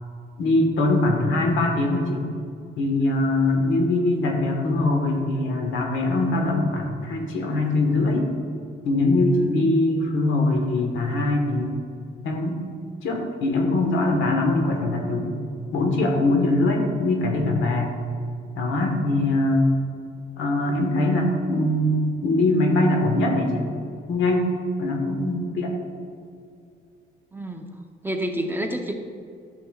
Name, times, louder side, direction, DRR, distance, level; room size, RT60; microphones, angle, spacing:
voice 1, 0.4-2.2 2.8-8.3 8.8-11.8 12.2-12.6 13.0-15.4 15.7-18.0 18.5-19.7 20.4-23.7 24.1-24.5 24.8-25.7, left 2 dB, 80° left, 2 dB, 1.4 m, -22 dB
voice 2, 27.3-27.7 28.0-28.9, right 1 dB, 10° right, 3 dB, 0.8 m, -28 dB
11.0 x 7.0 x 2.4 m, 2.4 s
cardioid pair, 90°, 20 cm